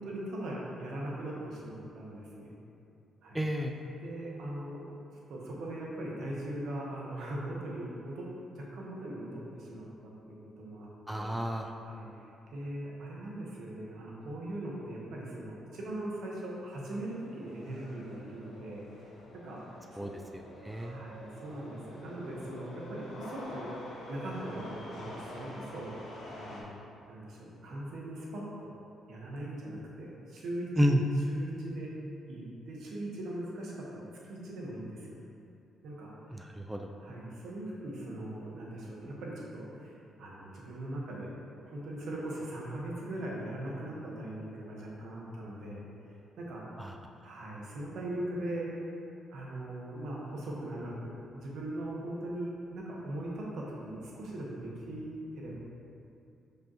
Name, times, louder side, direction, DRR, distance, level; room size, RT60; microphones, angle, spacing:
voice 1, 0.0-2.5 3.2-3.4 3.7-4.9 5.3-10.9 11.1-11.3 11.6-19.1 19.4-19.8 20.7-23.7 24.1-28.7 29.1-31.0 31.3-31.9 32.3-35.2 35.8-36.5 37.0-41.3 41.6-45.9 46.4-46.8 47.2-48.7 49.3-55.6, right 1 dB, 75° right, -4 dB, 1.2 m, -40 dB
voice 2, 3.3-3.7 11.1-11.7 20.0-21.0 30.8-31.0 36.3-36.9 46.8-46.9, equal, 5° right, 2 dB, 0.3 m, -31 dB
sound 1, 17.0-26.6, left 1 dB, 70° left, 1.5 m, -47 dB
6.0 x 5.3 x 3.0 m, 2.6 s
cardioid pair, 90°, 0 cm